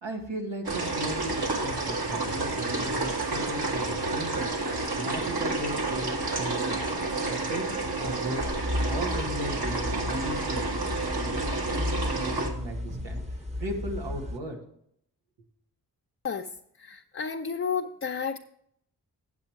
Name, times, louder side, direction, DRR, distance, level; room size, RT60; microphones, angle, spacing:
voice 1, 0.0-4.5 4.9-7.6 8.0-8.5 8.8-10.8 11.2-14.6, right 1 dB, 90° right, 0 dB, 1.8 m, -36 dB
sound 1, 0.7-12.5, right 3 dB, 60° right, 1.9 m, -30 dB
sound 2, 8.4-14.4, left 1 dB, 15° right, 1.1 m, -34 dB
voice 2, 16.8-18.4, left 6 dB, 30° left, 3 dB, 0.6 m, -31 dB
8.3 x 7.6 x 4.6 m, 0.70 s
cardioid pair, 45°, 43 cm